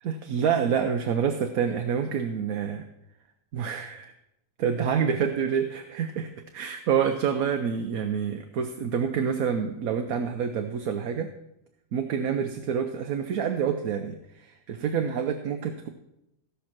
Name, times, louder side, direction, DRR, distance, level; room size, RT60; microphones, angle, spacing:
voice 1, 0.0-2.8 3.5-4.1 4.6-11.3 11.9-15.9, right 7 dB, 80° right, 5 dB, 1.2 m, -27 dB
15.5 x 5.7 x 6.0 m, 0.84 s
omnidirectional pair, 1.5 m